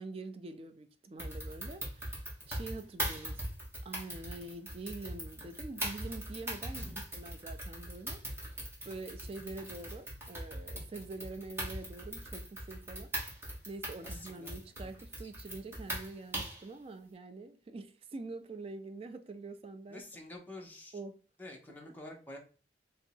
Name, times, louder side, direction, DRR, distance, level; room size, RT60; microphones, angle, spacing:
voice 1, 0.0-3.5 3.8-6.9 7.1-8.5 8.8-13.1 13.4-20.0 20.9-21.2, right 3 dB, 30° right, 0.3 m, -45 dB
sound 1, 1.2-16.7, right 1 dB, 15° right, 1.1 m, -40 dB
voice 2, 14.0-14.9 19.9-21.0 21.4-22.4, left 1 dB, 10° left, 0.8 m, -48 dB
3.0 x 2.7 x 4.4 m
head